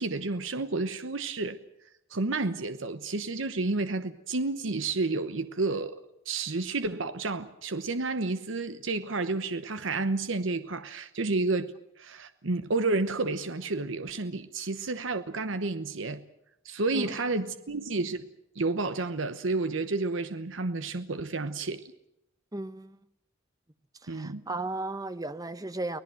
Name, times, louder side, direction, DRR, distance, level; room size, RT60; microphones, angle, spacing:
voice 1, 0.0-1.6 2.1-6.0 6.3-16.2 16.6-18.3 18.6-21.9 24.1-24.4, right 3 dB, 70° right, 1.0 m, -30 dB
voice 2, 22.5-23.0 24.0-26.0, right 2 dB, 20° right, 0.9 m, -35 dB
24.5 x 18.0 x 7.7 m
head